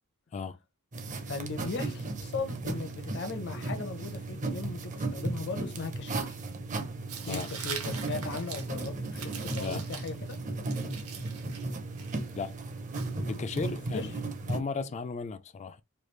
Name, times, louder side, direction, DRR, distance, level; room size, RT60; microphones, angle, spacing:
sound 1, 0.9-14.6, right 2 dB, 35° right, 0.6 m, -36 dB
voice 1, 1.3-6.4 7.2-10.1 13.5-13.6 13.9-14.1 14.7-14.9, left 4 dB, 55° left, 0.7 m, -38 dB
Tearing, 7.1-13.7, right 6 dB, 75° right, 0.9 m, -44 dB
voice 2, 7.2-7.5 9.5-9.8 12.3-12.5 13.3-14.1 14.5-15.8, left 4 dB, 30° left, 0.3 m, -35 dB
3.2 x 2.3 x 3.1 m
head